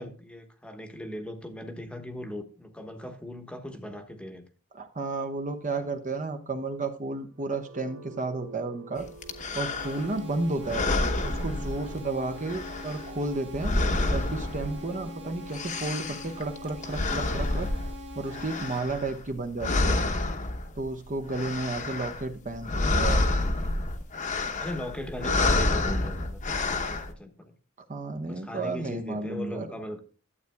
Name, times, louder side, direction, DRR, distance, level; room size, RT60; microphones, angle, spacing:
voice 1, 0.0-4.4 10.0-10.1 24.6-27.5 28.3-30.0, left 1 dB, 5° left, 6 dB, 1.1 m, -39 dB
voice 2, 4.7-9.1 9.5-10.9 11.2-13.7 14.1-17.7 18.1-20.0 20.8-23.2 27.9-29.7, right 3 dB, 35° right, 6 dB, 0.9 m, -32 dB
sound 1, 7.2-21.1, right 4 dB, 75° right, 2.6 m, -51 dB
sound 2, 9.2-10.2 10.6-12.2 12.4-15.1 15.3-19.3 19.6-20.9 21.2-22.3 22.5-27.1, left 2 dB, 35° left, 1.0 m, -28 dB
sound 3, 9.8-18.8, left 1 dB, 55° right, 1.7 m, -43 dB
12.5 x 8.2 x 2.2 m, 0.36 s
head